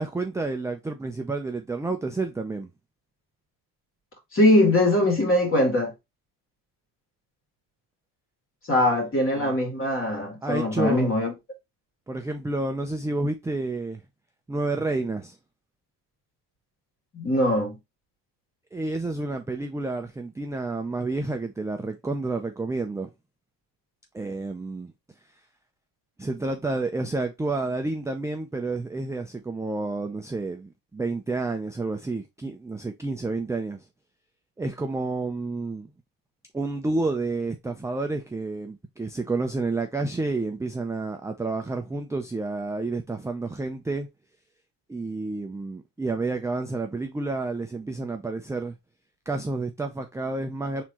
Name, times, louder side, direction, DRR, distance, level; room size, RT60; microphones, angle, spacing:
voice 1, 0.0-2.7 8.9-9.1 9.4-9.5 10.4-11.1 12.1-14.0 14.5-15.4 18.7-23.1 24.1-24.9 26.2-33.8 34.6-35.9 36.5-44.1 44.9-48.8 49.3-50.8, right 3 dB, 5° right, 0.4 m, -30 dB
voice 2, 4.3-5.9 8.7-11.3 17.1-17.7, left 1 dB, 30° left, 2.4 m, -21 dB
4.4 x 3.7 x 2.8 m
cardioid pair, 105°, 43 cm